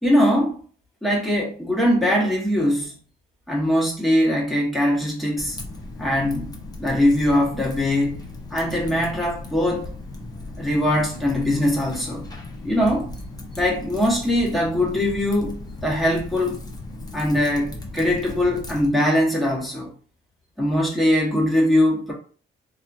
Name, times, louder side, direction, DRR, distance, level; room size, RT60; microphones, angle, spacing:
voice 1, 0.0-0.6 1.0-3.0 3.5-5.6 6.0-9.9 10.6-12.2 12.6-13.1 13.6-16.6 17.1-19.9 20.6-22.1, left 1 dB, ahead, 1.1 m, -21 dB
Typing, 5.4-18.9, left 2 dB, 20° left, 0.8 m, -37 dB
2.7 x 2.3 x 2.5 m
cardioid pair, 90°, 20 cm